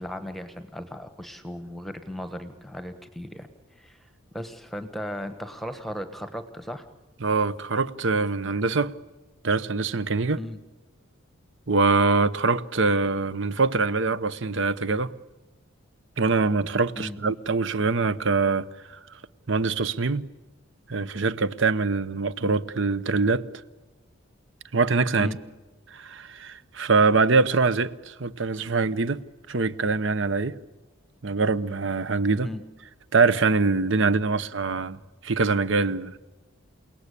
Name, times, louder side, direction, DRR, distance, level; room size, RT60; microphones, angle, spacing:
voice 1, 0.0-3.5 3.8-4.1 4.3-6.8 10.4-10.6 17.0-17.2 25.2-25.4 32.4-32.6, equal, ahead, 1.2 m, -36 dB
voice 2, 7.2-8.9 9.4-10.4 11.7-15.1 16.2-19.0 19.5-20.3 20.9-23.4 24.7-25.3 25.9-29.2 29.5-30.5 31.2-32.5 33.1-36.1, right 4 dB, 60° right, 0.9 m, -24 dB
29.0 x 18.0 x 8.5 m
head